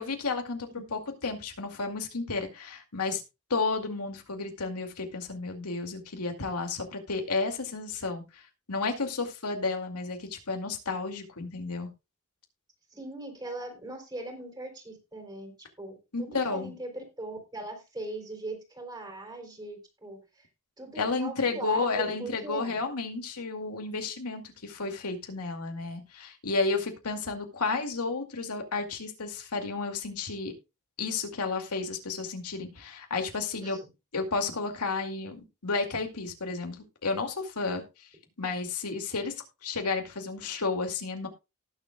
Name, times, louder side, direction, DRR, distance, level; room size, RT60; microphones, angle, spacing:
voice 1, 0.0-3.2 3.5-11.9 16.1-16.7 21.0-30.5 31.0-33.8 34.1-38.1 38.4-39.3 39.6-41.3, left 4 dB, 90° left, 4 dB, 2.4 m, -32 dB
voice 2, 12.9-20.5 20.8-22.8 33.6-33.8, right 2 dB, 20° right, 3 dB, 3.6 m, -40 dB
18.5 x 7.3 x 2.3 m, 0.26 s
head